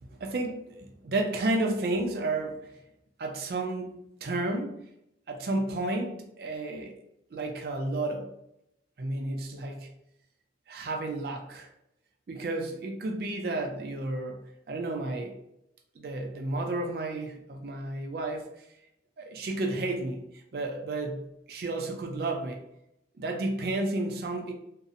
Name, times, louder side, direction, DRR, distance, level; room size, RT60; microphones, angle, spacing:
voice 1, 0.2-2.7 3.2-4.8 5.3-7.0 7.3-8.3 9.0-9.9 10.7-11.7 12.3-14.4 14.7-15.4 16.0-18.4 19.2-20.2 20.5-22.6 23.2-24.5, right 2 dB, 60° right, 3 dB, 0.4 m, -32 dB
2.6 x 2.0 x 2.4 m, 0.80 s
head